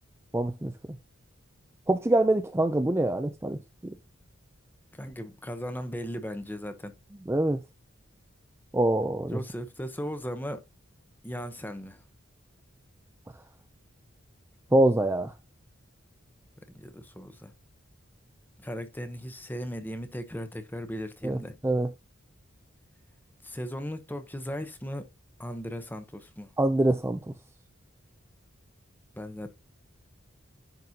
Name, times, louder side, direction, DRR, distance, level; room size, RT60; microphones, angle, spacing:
voice 1, 0.3-0.7 1.9-3.9 7.3-7.6 8.7-9.4 14.7-15.3 21.2-21.9 26.6-27.2, right 1 dB, 15° right, 0.5 m, -25 dB
voice 2, 4.9-6.9 9.3-10.6 11.2-12.0 16.7-17.5 18.6-21.6 23.4-25.1 25.4-26.5 29.2-29.5, equal, 10° left, 0.9 m, -37 dB
10.5 x 4.2 x 2.8 m
head